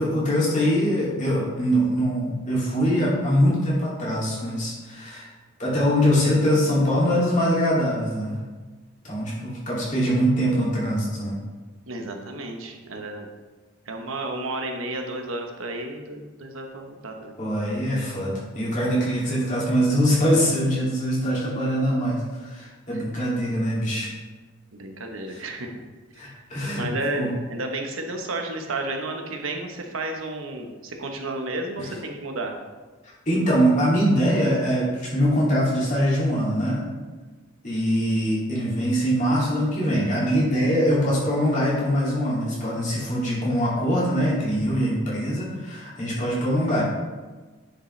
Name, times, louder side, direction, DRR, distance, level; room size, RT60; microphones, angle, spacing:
voice 1, 0.0-5.3 5.6-8.4 9.0-11.3 17.4-24.1 25.3-25.4 26.2-26.9 27.1-27.3 33.3-36.8 37.6-46.8, equal, 35° left, -7 dB, 2.5 m, -23 dB
voice 2, 11.9-13.3 13.9-17.4 22.9-23.0 24.7-25.7 26.2-26.4 26.8-32.6, right 2 dB, 80° right, 3 dB, 1.0 m, -32 dB
10.0 x 5.2 x 3.2 m, 1.3 s
head